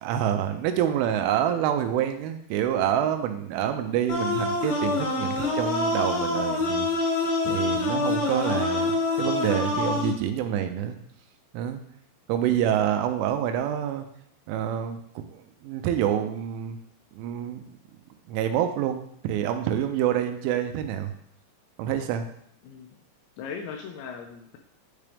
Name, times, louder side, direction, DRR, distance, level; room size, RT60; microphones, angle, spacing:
voice 1, 0.0-6.9 7.4-11.0 11.5-11.8 12.3-14.1 14.5-16.8 17.1-17.6 18.3-21.1 21.8-22.3, right 10 dB, 85° right, 7 dB, 3.1 m, -27 dB
sound 1, 4.1-10.1, left 2 dB, 60° left, 2.9 m, -26 dB
voice 2, 23.4-24.6, left 6 dB, 85° left, 3 dB, 2.7 m, -38 dB
9.6 x 3.7 x 3.4 m, 0.68 s
omnidirectional pair, 5.6 m